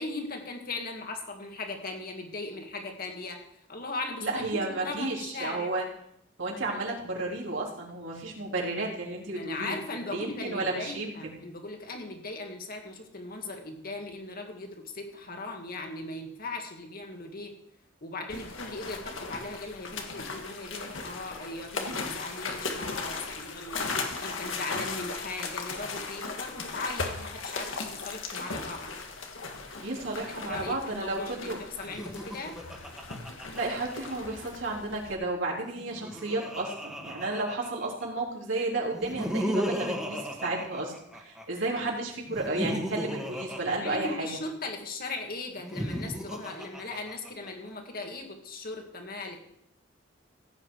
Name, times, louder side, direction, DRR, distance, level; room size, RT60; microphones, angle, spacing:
voice 1, 0.0-3.4 3.7-5.7 9.3-17.5 18.0-28.9 30.4-32.6 43.8-49.4, left 2 dB, 50° left, 3 dB, 2.2 m, -38 dB
voice 2, 4.2-5.9 6.4-9.8 10.1-11.3 29.8-31.6 33.5-44.3, right 2 dB, 75° right, -3 dB, 3.6 m, -32 dB
sound 1, 18.3-35.1, left 4 dB, 85° left, 1.9 m, -37 dB
Laughter, 31.8-34.3 35.7-38.0 38.9-41.4 42.3-44.7 45.5-47.5, equal, 5° right, 1.9 m, -35 dB
16.0 x 8.8 x 4.8 m, 0.73 s
head